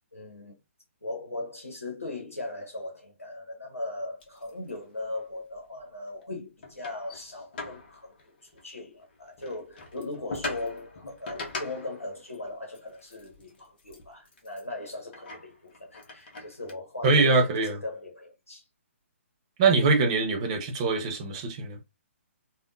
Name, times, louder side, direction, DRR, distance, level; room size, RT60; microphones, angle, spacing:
voice 1, 0.1-0.6 1.0-18.7, left 2 dB, 80° left, 0.8 m, -39 dB
sound 1, 4.2-5.0 5.3-5.9 6.2-6.3 6.6-8.8 9.0-16.7, left 3 dB, 45° left, 0.9 m, -42 dB
voice 2, 17.0-17.7 19.6-21.8, right 3 dB, 25° right, 0.6 m, -23 dB
3.4 x 2.2 x 2.5 m
figure-of-eight pair, 135°, 7 cm